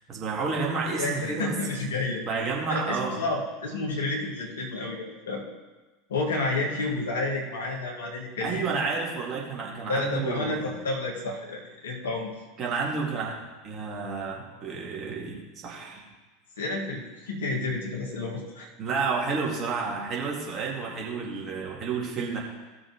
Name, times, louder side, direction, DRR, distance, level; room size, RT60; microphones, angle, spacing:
voice 1, 0.1-1.7 2.2-3.2 8.4-10.7 12.6-13.4 13.6-16.0 18.8-22.4, right 4 dB, 30° right, -2 dB, 2.2 m, -30 dB
voice 2, 1.0-2.2 2.7-5.4 6.1-8.7 9.9-12.3 16.6-18.7, left 2 dB, 65° left, -2 dB, 2.0 m, -30 dB
16.0 x 6.3 x 3.1 m, 1.2 s
figure-of-eight pair, 80°, 0 cm